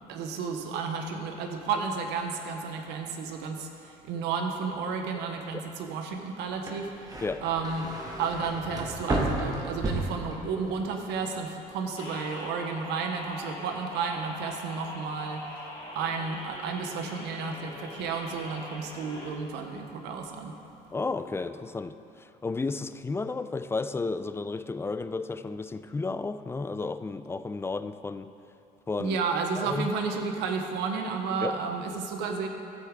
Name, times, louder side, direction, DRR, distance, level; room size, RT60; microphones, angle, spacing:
voice 1, 0.1-7.9 8.2-20.6 29.0-32.5, right 5 dB, 90° right, 4 dB, 0.9 m, -32 dB
sound 1, 6.7-10.8 11.1-11.7, right 2 dB, 20° right, 1.5 m, -32 dB
sound 2, 12.0-19.3, left 1 dB, 35° left, 2.5 m, -42 dB
voice 2, 20.9-28.3 28.9-29.2 29.6-29.9 31.4-31.6, left 3 dB, 15° left, 12 dB, 0.3 m, -32 dB
14.5 x 8.0 x 3.6 m, 2.7 s
cardioid pair, 110°, 17 cm